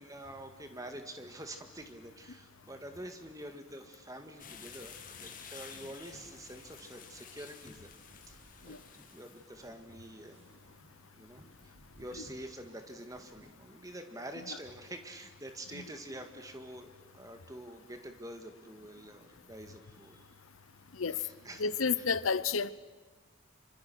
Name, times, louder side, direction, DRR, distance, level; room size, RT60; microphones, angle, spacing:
voice 1, 0.0-7.9 8.2-10.5 11.2-20.3 21.1-22.0, right 1 dB, 15° right, 2.0 m, -47 dB
sound 1, 4.1-13.5, right 1 dB, 65° right, 6.3 m, -61 dB
sound 2, 4.4-9.5, left 7 dB, 40° left, 2.1 m, -51 dB
voice 2, 21.6-22.7, left 5 dB, 80° left, 0.8 m, -31 dB
27.0 x 25.0 x 6.2 m
head